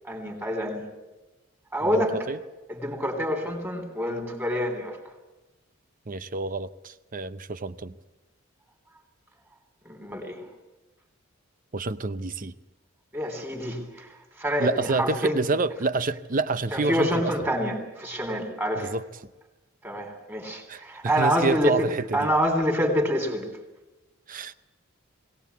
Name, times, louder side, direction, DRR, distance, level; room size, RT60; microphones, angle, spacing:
voice 1, 0.0-0.8 1.7-2.2 2.7-5.0 9.9-10.4 13.1-15.5 16.7-18.9 19.8-23.5, equal, 10° right, 3.6 m, -27 dB
voice 2, 1.8-2.4 6.1-8.0 11.7-12.5 14.6-17.3 18.8-19.0 20.7-22.3 24.3-24.5, right 3 dB, 40° right, 0.7 m, -28 dB
21.5 x 18.0 x 8.4 m
head